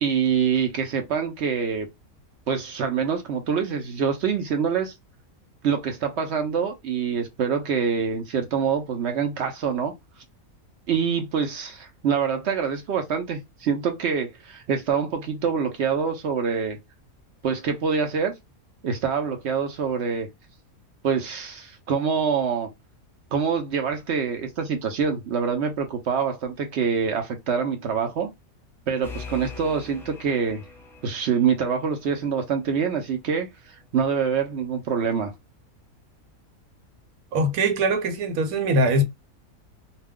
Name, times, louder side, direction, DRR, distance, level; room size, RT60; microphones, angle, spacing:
voice 1, 0.0-1.9 2.5-4.9 5.6-9.9 10.9-16.8 17.4-18.3 18.8-20.3 21.0-22.7 23.3-28.3 28.9-30.6 31.0-35.3, right 6 dB, 65° right, 0.7 m, -25 dB
sound 1, 29.0-32.5, left 4 dB, 5° left, 0.4 m, -42 dB
voice 2, 37.3-39.0, right 1 dB, 80° right, 1.1 m, -22 dB
2.4 x 2.2 x 3.5 m
omnidirectional pair, 1.5 m